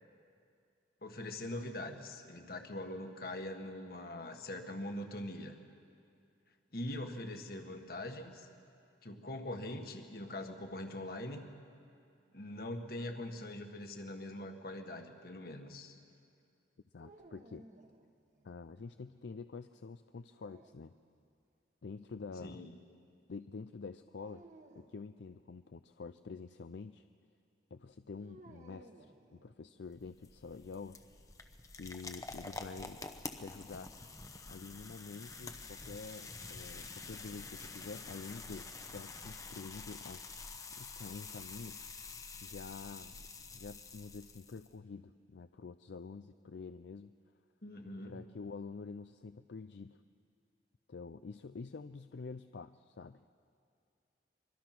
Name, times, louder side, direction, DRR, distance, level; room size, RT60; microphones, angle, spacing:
voice 1, 1.0-5.5 6.7-8.5 9.0-11.5 12.3-15.9 22.4-22.7 47.6-48.1, left 1 dB, 55° left, 5 dB, 1.7 m, -42 dB
voice 2, 16.9-17.7 18.4-20.9 21.8-22.6 23.3-24.4 24.8-27.0 27.7-31.0 31.8-33.0 33.4-33.9 34.5-40.2 40.8-41.8 42.4-43.3 43.5-47.1 48.0-50.0 50.9-53.2, left 4 dB, 75° left, 10 dB, 0.5 m, -47 dB
sound 1, 17.0-18.6 20.2-21.3 24.2-25.0 28.2-29.9, right 2 dB, 40° right, 1.4 m, -59 dB
sound 2, 29.9-44.7, left 3 dB, 20° left, 0.9 m, -48 dB
24.5 x 23.5 x 6.0 m, 2.4 s
head